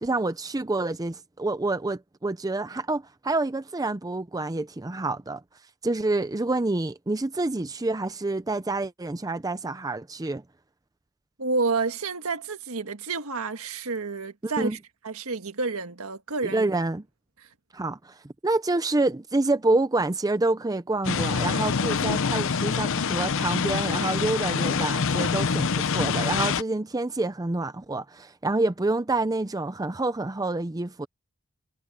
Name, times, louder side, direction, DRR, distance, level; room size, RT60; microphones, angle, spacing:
voice 1, 0.0-5.4 5.8-10.4 14.4-14.8 16.5-17.0 17.7-31.1, right 2 dB, 15° right, 0.5 m, -27 dB
voice 2, 11.4-14.8 15.0-16.7, right 4 dB, 70° right, 1.7 m, -29 dB
sound 1, 21.0-26.6, left 5 dB, 60° left, 0.6 m, -25 dB
head